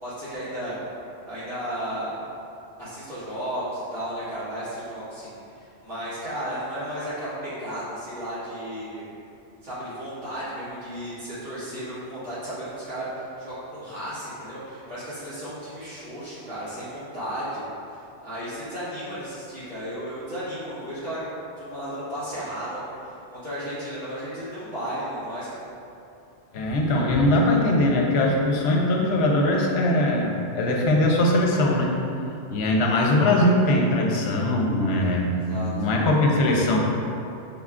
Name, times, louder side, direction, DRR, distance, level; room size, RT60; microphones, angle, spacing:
voice 1, 0.0-0.8 1.3-2.2 2.8-9.1 9.6-25.6 35.3-35.7, equal, 85° right, -14 dB, 2.0 m, -34 dB
voice 2, 26.5-31.9 32.5-36.8, left 1 dB, 70° left, -1 dB, 0.8 m, -21 dB
5.3 x 2.3 x 3.6 m, 2.7 s
omnidirectional pair, 1.2 m